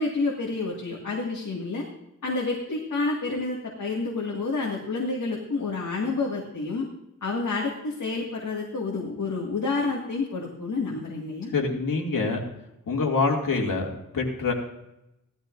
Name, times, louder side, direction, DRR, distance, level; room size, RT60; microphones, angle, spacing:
voice 1, 0.0-1.8 2.2-6.9 7.2-11.5, left 3 dB, 65° left, -2 dB, 2.0 m, -29 dB
voice 2, 11.5-12.4 12.9-13.9 14.1-14.5, left 4 dB, 80° left, 0 dB, 2.4 m, -25 dB
16.5 x 13.0 x 2.6 m, 0.86 s
wide cardioid pair, 155°, 33 cm